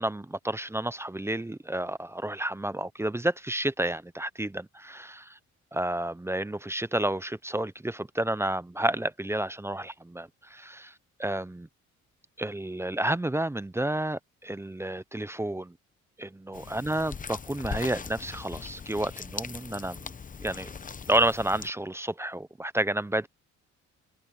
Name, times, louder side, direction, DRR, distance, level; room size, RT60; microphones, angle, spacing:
voice 1, 0.0-5.4 5.7-10.9 11.2-11.7 12.4-15.7 16.2-20.1 20.4-20.7 21.1-23.3, right 1 dB, 10° right, 0.6 m, -30 dB
sound 1, 16.5-21.7, left 5 dB, 25° left, 0.9 m, -40 dB
cardioid pair, 90°, 30 cm